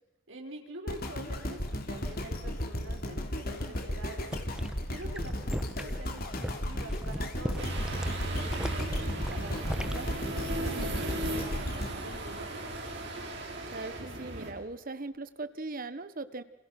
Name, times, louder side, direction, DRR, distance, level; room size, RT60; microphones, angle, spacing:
voice 1, 0.3-4.3 4.9-7.7 8.2-12.6, right 1 dB, 85° right, 1 dB, 5.3 m, -45 dB
sound 1, 0.9-13.1 13.6-13.7, left 1 dB, 50° left, 3.2 m, -35 dB
sound 2, 4.2-11.2 11.5-11.9, equal, 5° right, 1.1 m, -39 dB
sound 3, 7.6-14.5, right 2 dB, 65° right, 6.2 m, -36 dB
voice 2, 13.7-16.4, right 3 dB, 45° right, 13 dB, 1.3 m, -39 dB
29.0 x 27.5 x 6.0 m, 0.91 s
head